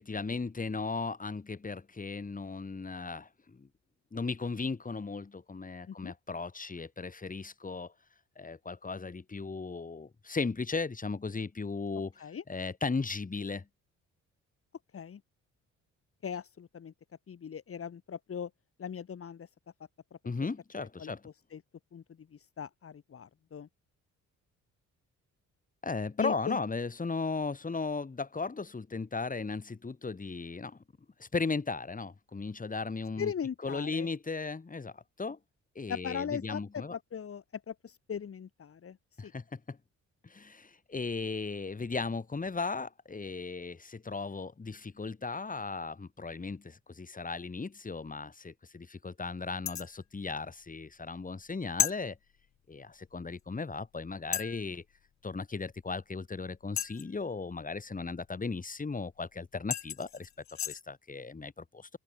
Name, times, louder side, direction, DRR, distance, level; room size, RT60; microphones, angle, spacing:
voice 1, 0.0-3.7 4.1-7.9 8.4-13.7 20.3-21.2 25.8-30.8 31.2-33.3 33.6-35.4 35.8-37.0 39.2-39.8 40.2-52.2 52.7-54.8 55.2-60.3 60.7-61.9, left 4 dB, 25° left, 6.9 m, -36 dB
voice 2, 16.2-16.9 17.3-18.5 18.8-19.5 21.0-21.1 21.5-21.6 21.9-22.0 22.3-23.7 26.2-26.6 33.2-34.1 35.9-39.0 39.2-39.3, left 7 dB, 45° left, 3.7 m, -39 dB
sound 1, 49.7-50.0 51.8-52.0 53.4-53.5 54.3-54.6 56.8-57.2 59.2-59.3 59.7-60.8, left 10 dB, 65° left, 3.4 m, -33 dB
open air
cardioid pair, 90°, 30 cm